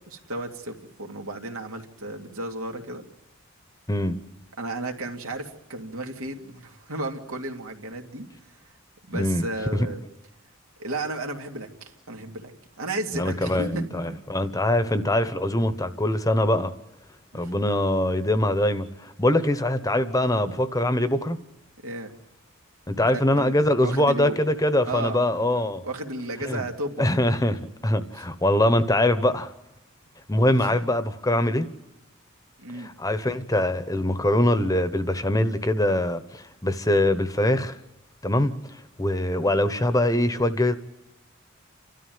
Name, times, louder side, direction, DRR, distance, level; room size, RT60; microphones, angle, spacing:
voice 1, 0.1-3.0 4.6-8.3 9.1-10.0 10.8-14.2 17.3-17.5 21.8-22.1 23.1-23.6 23.8-24.4 24.8-27.1 28.1-28.2 30.5-30.8 31.3-31.4 32.6-32.9, right 2 dB, 85° right, 2.6 m, -34 dB
voice 2, 9.1-9.5 13.1-16.7 17.3-21.4 22.9-25.8 26.5-26.6 27.0-29.5 30.3-31.7 32.8-37.8 38.2-38.5 39.0-40.7, left 1 dB, 15° left, 1.0 m, -23 dB
30.0 x 13.0 x 9.4 m
head